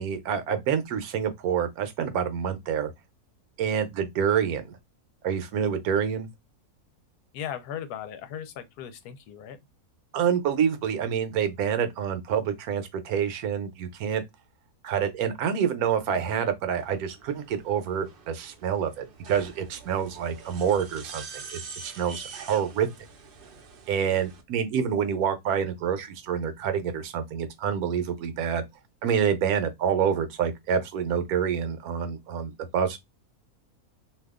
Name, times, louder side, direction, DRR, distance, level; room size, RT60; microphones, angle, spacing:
voice 1, 0.0-2.9 3.6-4.8 5.2-6.3 10.1-14.2 14.8-22.9 23.9-28.6 29.0-33.0, right 8 dB, 75° right, 1.1 m, -27 dB
voice 2, 7.3-9.6, left 9 dB, 90° left, 1.1 m, -37 dB
sound 1, 16.8-24.4, right 5 dB, 55° right, 0.6 m, -45 dB
2.7 x 2.3 x 3.5 m
omnidirectional pair, 1.6 m